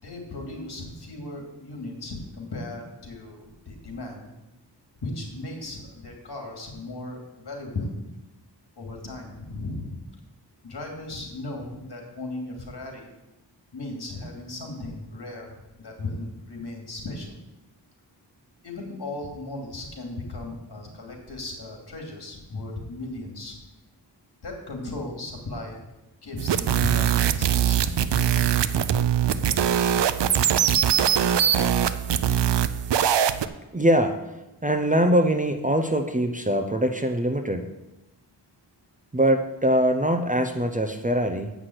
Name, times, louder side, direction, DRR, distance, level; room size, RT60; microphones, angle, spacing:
voice 1, 0.0-4.3 5.0-7.9 8.8-10.0 10.6-13.1 13.7-17.3 18.6-23.6 24.4-25.8 26.2-28.3, left 2 dB, 60° left, 1 dB, 2.7 m, -36 dB
sound 1, 26.4-33.5, right 9 dB, 75° right, 0.6 m, -22 dB
voice 2, 33.7-34.2 34.6-37.7 39.1-41.5, right 1 dB, 20° right, 6 dB, 0.6 m, -22 dB
8.2 x 6.0 x 7.9 m, 0.97 s
wide cardioid pair, 105°, 43 cm